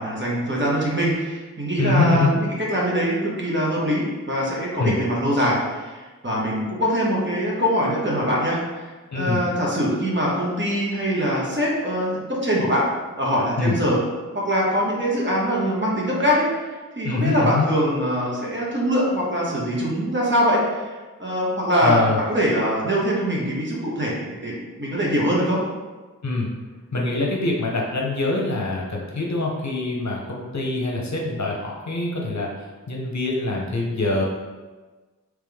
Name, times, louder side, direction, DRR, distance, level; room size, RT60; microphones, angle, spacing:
voice 1, 0.0-12.9 13.2-14.0 14.3-16.5 17.0-20.8 21.2-22.0 22.3-25.6, equal, 35° right, -5 dB, 1.1 m, -23 dB
voice 2, 1.8-2.4 4.8-5.0 9.1-9.4 13.6-13.8 17.0-17.7 21.8-22.2 26.2-26.5 26.9-32.5 32.9-34.2, left 3 dB, 60° left, -2 dB, 0.8 m, -24 dB
3.6 x 3.1 x 3.5 m, 1.3 s
wide cardioid pair, 55°, 33 cm